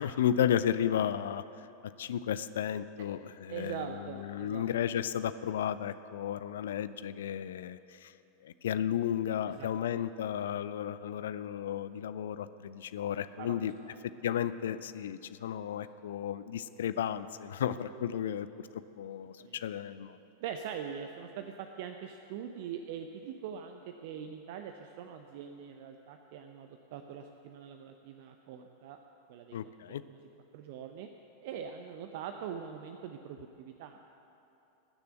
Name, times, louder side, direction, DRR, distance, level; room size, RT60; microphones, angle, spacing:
voice 1, 0.0-1.4 1.8-8.1 8.4-13.7 14.2-18.5 18.7-20.2 29.5-30.0, left 9 dB, 60° left, 13 dB, 0.5 m, -33 dB
voice 2, 3.5-4.7 9.4-10.2 13.4-13.6 13.8-14.0 17.6-18.4 19.4-19.6 20.4-29.0 29.3-29.6 30.0-30.2 30.5-31.1 31.4-34.0, right 8 dB, 50° right, 6 dB, 0.7 m, -43 dB
20.0 x 6.8 x 7.9 m, 2.8 s
figure-of-eight pair, 90°, 0 cm